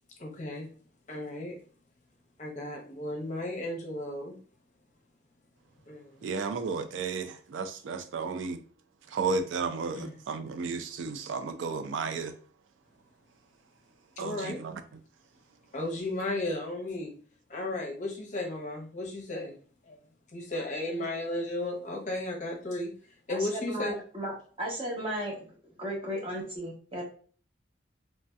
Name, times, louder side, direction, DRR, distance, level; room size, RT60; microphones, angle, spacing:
voice 1, 0.2-0.7 1.1-1.5 2.4-4.4 5.9-6.2 9.9-10.1 14.2-14.6 15.7-17.1 17.5-19.5 19.9-20.0 20.3-22.9 23.3-24.0, left 1 dB, 40° left, 0.7 m, -34 dB
voice 2, 6.2-8.6 9.1-12.3 14.2-14.8, right 4 dB, 80° right, 0.3 m, -33 dB
voice 3, 23.3-25.5 25.8-27.0, equal, 30° right, 1.0 m, -35 dB
3.1 x 2.6 x 2.2 m
head